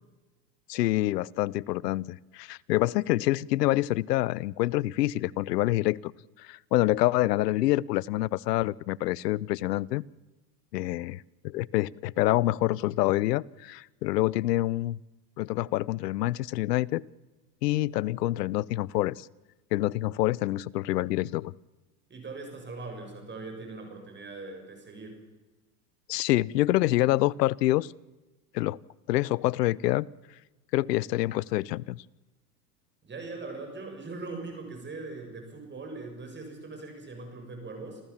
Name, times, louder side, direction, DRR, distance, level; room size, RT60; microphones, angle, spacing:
voice 1, 0.7-6.1 6.4-10.0 10.7-15.0 15.4-17.0 17.6-19.3 19.7-21.5 26.1-27.9 28.5-28.8 29.1-30.1 30.7-32.0, left 16 dB, 85° left, 26 dB, 0.7 m, -26 dB
voice 2, 22.1-25.2 33.0-38.0, right 3 dB, 25° right, 4 dB, 7.2 m, -41 dB
27.5 x 14.0 x 7.3 m, 1.2 s
hypercardioid pair, 105°, 47 cm